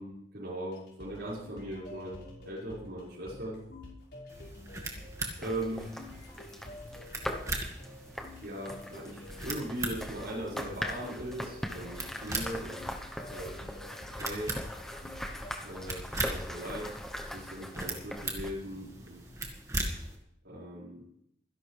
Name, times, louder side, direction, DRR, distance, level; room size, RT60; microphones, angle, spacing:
voice 1, 0.0-3.6 5.4-6.3 8.4-12.8 13.3-13.5 14.2-14.6 15.6-19.2 20.4-21.0, right 1 dB, 80° right, -9 dB, 5.5 m, -39 dB
sound 1, 0.6-15.5, left 1 dB, 80° left, 5.6 m, -49 dB
sound 2, 4.3-20.2, right 2 dB, 20° right, 2.0 m, -40 dB
sound 3, 5.4-18.5, equal, 5° left, 1.0 m, -41 dB
24.5 x 11.0 x 3.4 m, 0.73 s
head